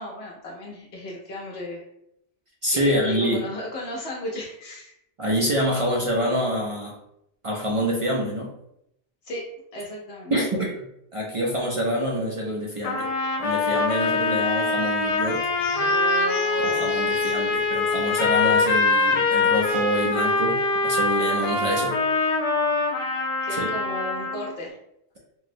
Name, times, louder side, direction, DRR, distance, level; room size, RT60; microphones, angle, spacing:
voice 1, 0.0-1.8 2.8-4.9 9.2-9.4 9.7-10.3 23.4-24.7, left 1 dB, 75° left, -2 dB, 0.8 m, -34 dB
voice 2, 2.6-3.4 5.2-7.0 7.4-8.5 10.3-10.7 11.1-13.1 13.4-15.5 16.6-22.0 23.5-23.7, equal, 50° right, -2 dB, 0.4 m, -26 dB
sound 1, 12.8-24.5, left 3 dB, 55° left, 0.4 m, -23 dB
sound 2, 13.9-20.7 20.9-21.1 21.4-21.7, right 1 dB, 80° right, 1.6 m, -38 dB
3.8 x 2.0 x 2.5 m, 0.78 s
omnidirectional pair, 1.1 m